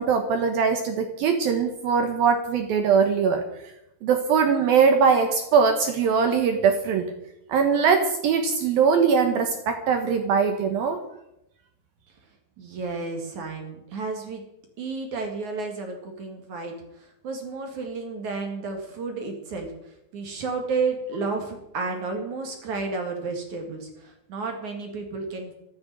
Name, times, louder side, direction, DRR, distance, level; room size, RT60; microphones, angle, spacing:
voice 1, 0.0-3.4 4.0-7.1 7.5-11.0, right 6 dB, 70° right, 6 dB, 2.4 m, -21 dB
voice 2, 12.6-14.4 14.8-25.5, right 4 dB, 50° right, 4 dB, 2.7 m, -32 dB
14.5 x 9.4 x 10.0 m, 0.85 s
omnidirectional pair, 5.5 m